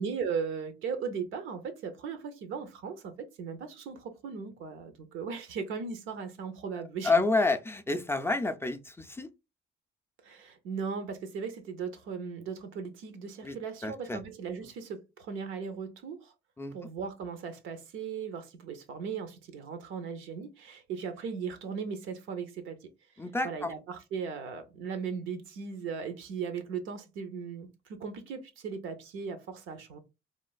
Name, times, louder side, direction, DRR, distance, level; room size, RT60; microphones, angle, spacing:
voice 1, 0.0-7.2 10.2-16.3 16.7-22.9 23.4-30.0, right 6 dB, 90° right, 0.6 m, -37 dB
voice 2, 7.0-9.3 13.4-13.6 13.8-14.2 16.6-16.7 23.2-23.7, left 3 dB, 10° left, 0.3 m, -29 dB
3.1 x 2.4 x 2.3 m
cardioid pair, 90°, 20 cm